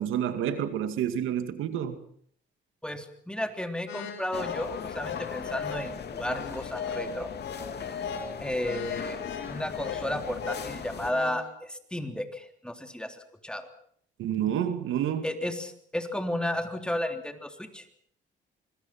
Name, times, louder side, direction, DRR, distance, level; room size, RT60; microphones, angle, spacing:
voice 1, 0.0-2.0 14.2-15.3, right 9 dB, 85° right, 2.4 m, -29 dB
voice 2, 2.8-7.3 8.4-9.2 9.5-13.7 15.2-17.9, left 1 dB, 5° left, 3.4 m, -33 dB
sound 1, 3.9-11.5, left 6 dB, 75° left, 6.3 m, -41 dB
sound 2, 4.3-11.1, left 6 dB, 55° left, 2.9 m, -37 dB
25.5 x 22.0 x 6.0 m
cardioid pair, 90°, 20 cm